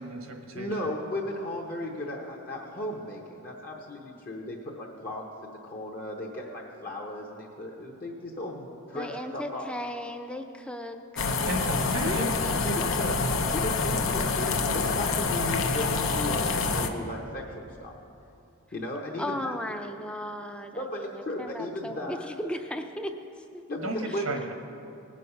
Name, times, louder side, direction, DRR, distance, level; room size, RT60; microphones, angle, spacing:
voice 1, 0.0-0.7 11.5-12.3 23.8-24.5, right 2 dB, 80° right, 4 dB, 1.3 m, -34 dB
voice 2, 0.5-9.7 12.0-13.2 13.5-17.9 18.7-19.5 20.7-22.3 23.7-24.3, left 1 dB, 40° left, -2 dB, 1.0 m, -35 dB
voice 3, 8.9-11.4 19.2-23.1 23.5-23.6 24.1-24.2, left 1 dB, 5° left, 6 dB, 0.5 m, -36 dB
sound 1, 11.2-16.9, left 4 dB, 70° left, 0.7 m, -27 dB
18.5 x 6.4 x 5.5 m, 2.7 s
head